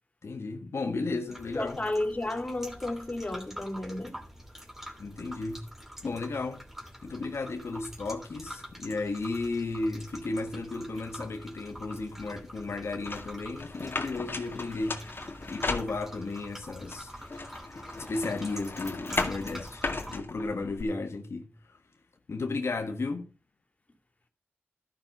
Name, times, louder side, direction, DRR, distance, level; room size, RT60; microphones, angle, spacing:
voice 1, 0.2-1.8 5.0-5.6 6.0-6.6 7.0-17.2 18.0-21.8 22.3-23.3, left 3 dB, 85° left, 1.3 m, -34 dB
sound 1, 1.3-20.2, equal, 5° right, 2.7 m, -46 dB
voice 2, 1.6-4.2, left 1 dB, 30° left, 2.9 m, -32 dB
sound 2, 13.0-16.4 16.9-20.8, left 3 dB, 55° left, 2.0 m, -36 dB
12.5 x 6.2 x 6.4 m
cardioid pair, 55°, 4 cm